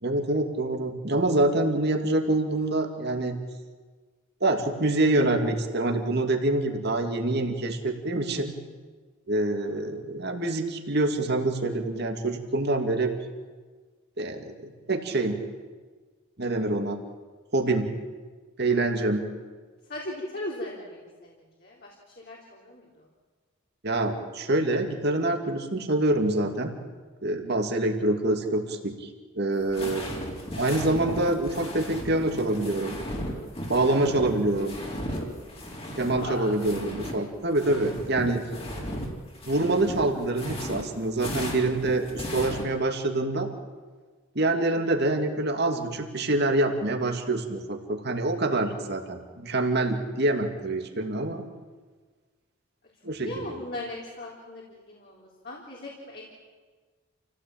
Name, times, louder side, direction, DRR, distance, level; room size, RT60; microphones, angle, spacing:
voice 1, 0.0-3.4 4.4-8.5 9.3-13.1 14.2-15.4 16.4-17.0 17.5-17.9 18.6-19.3 23.8-26.7 27.2-29.1 29.3-30.0 30.5-33.0 33.7-34.8 36.0-38.4 39.5-43.5 44.3-51.4 53.0-53.6, right 2 dB, 50° right, 5 dB, 2.6 m, -26 dB
voice 2, 19.9-23.1 36.1-36.5 53.2-56.2, left 1 dB, 45° left, -3 dB, 4.0 m, -38 dB
sound 1, 29.5-37.2 37.4-42.6, equal, 25° left, 3.6 m, -36 dB
28.5 x 17.0 x 8.9 m, 1.4 s
head